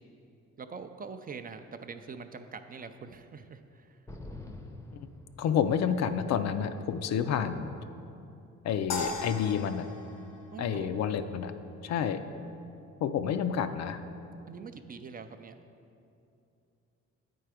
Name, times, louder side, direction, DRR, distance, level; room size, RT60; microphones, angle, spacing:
voice 1, 0.6-4.0 10.5-11.1 14.5-15.5, right 5 dB, 30° right, 8 dB, 0.4 m, -44 dB
sound 1, 4.1-6.0, left 2 dB, 10° left, 0.6 m, -45 dB
voice 2, 5.4-7.7 8.6-9.9 10.6-11.5 11.8-12.2 13.0-14.0, left 8 dB, 60° left, 9 dB, 0.5 m, -29 dB
sound 2, 8.9-11.3, left 3 dB, 80° left, 1.0 m, -38 dB
8.8 x 4.6 x 4.9 m, 2.7 s
cardioid pair, 90°, 30 cm